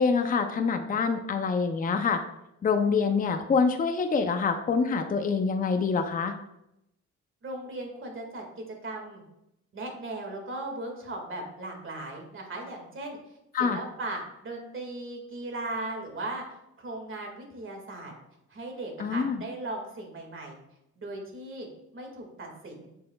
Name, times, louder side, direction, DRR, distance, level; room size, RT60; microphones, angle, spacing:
voice 1, 0.0-2.2 2.6-6.4 13.5-13.8 19.0-19.4, left 5 dB, 30° left, 7 dB, 0.6 m, -26 dB
voice 2, 7.4-9.2 9.7-13.2 13.6-16.4 16.8-18.1 18.5-20.6 21.0-21.7 21.9-22.9, right 2 dB, 40° right, 1 dB, 2.0 m, -37 dB
7.7 x 5.6 x 2.3 m, 0.84 s
cardioid pair, 90°, 30 cm